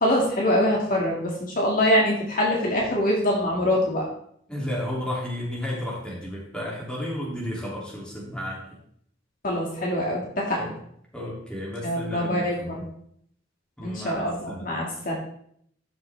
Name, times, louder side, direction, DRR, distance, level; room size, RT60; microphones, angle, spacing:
voice 1, 0.0-4.0 9.4-10.6 11.8-12.9 13.8-15.1, left 1 dB, 50° left, -2 dB, 2.3 m, -24 dB
voice 2, 4.5-8.6 10.6-10.7 11.1-12.8 13.8-14.7, left 1 dB, 5° left, -5 dB, 3.0 m, -33 dB
13.0 x 6.4 x 3.6 m, 0.67 s
head